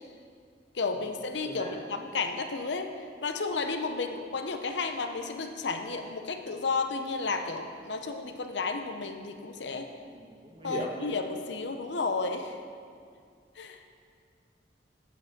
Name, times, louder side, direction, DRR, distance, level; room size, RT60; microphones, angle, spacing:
voice 1, 0.7-9.9 10.6-12.6 13.6-13.8, left 4 dB, 85° left, 6 dB, 0.7 m, -32 dB
voice 2, 1.4-1.8 10.1-10.9, equal, 30° right, -3 dB, 1.5 m, -39 dB
8.5 x 8.1 x 5.3 m, 2.2 s
head